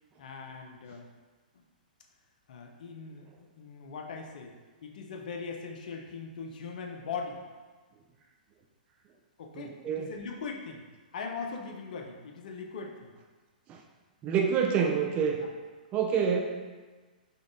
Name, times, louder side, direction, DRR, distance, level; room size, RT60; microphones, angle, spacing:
voice 1, 0.2-1.1 2.5-4.5 4.8-7.4 9.4-10.8 11.1-13.1 15.3-15.5, left 5 dB, 60° left, 3 dB, 0.5 m, -40 dB
voice 2, 9.5-10.1 13.7-13.8 14.2-15.4 15.9-16.4, right 6 dB, 25° right, 2 dB, 0.3 m, -27 dB
5.1 x 2.3 x 2.5 m, 1.4 s
figure-of-eight pair, 115°, 5 cm